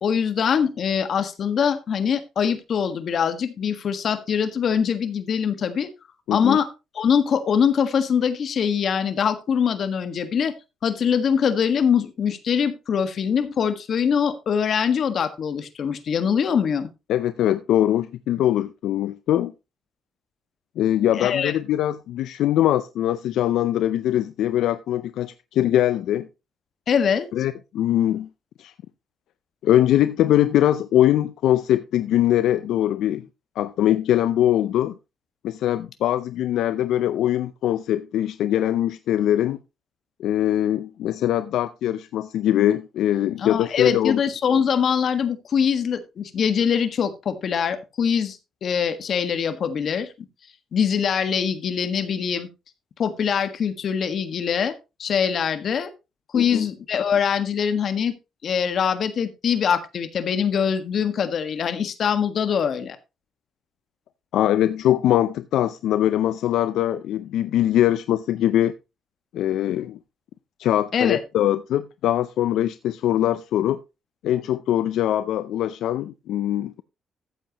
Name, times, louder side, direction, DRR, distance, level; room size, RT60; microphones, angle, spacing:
voice 1, 0.0-5.9 6.3-6.7 6.9-10.5 10.8-16.9 21.1-21.5 26.9-27.3 43.4-50.1 50.7-52.5 53.0-54.7 55.0-55.9 56.3-58.1 58.4-63.0 70.9-71.2, left 7 dB, 60° left, 1.5 m, -23 dB
voice 2, 17.1-19.5 20.8-26.3 27.3-28.3 28.6-28.7 29.6-33.3 33.6-35.0 35.4-39.6 40.2-44.2 56.3-56.7 64.3-68.7 69.3-70.0 70.6-73.8 74.2-76.8, left 12 dB, 80° left, 0.5 m, -22 dB
14.0 x 8.0 x 2.9 m
cardioid pair, 90°, 0 cm